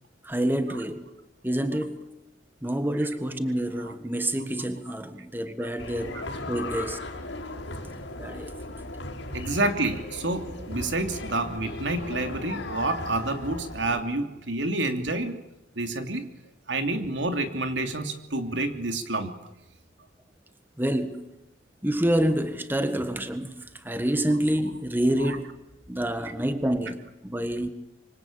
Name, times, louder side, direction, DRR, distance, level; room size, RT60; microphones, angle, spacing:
voice 1, 0.2-1.1 1.4-2.2 2.6-7.0 8.2-8.5 16.8-16.9 20.8-21.4 21.8-25.6 25.9-27.7, right 1 dB, 10° right, 1.5 m, -28 dB
sound 1, 5.8-14.0, left 2 dB, 80° left, 5.2 m, -37 dB
voice 2, 9.3-15.4 15.7-16.3 16.7-19.3 25.3-25.4, right 2 dB, 80° right, 3.0 m, -28 dB
26.0 x 25.0 x 8.8 m
head